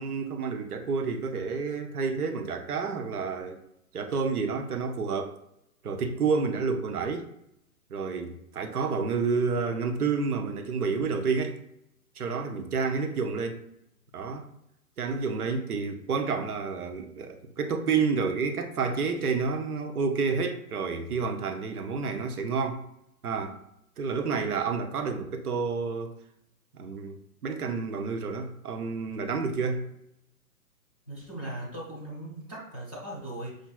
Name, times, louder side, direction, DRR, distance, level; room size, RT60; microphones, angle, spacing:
voice 1, 0.0-3.6 3.9-5.4 5.8-7.3 7.9-11.6 12.2-13.6 14.1-14.4 15.0-22.8 23.2-23.6 24.0-26.1 26.7-29.9, right 5 dB, 75° right, 5 dB, 0.8 m, -29 dB
voice 2, 31.1-33.6, right 1 dB, 5° right, -9 dB, 0.4 m, -38 dB
6.2 x 2.6 x 2.3 m, 0.78 s
figure-of-eight pair, 125°, 45 cm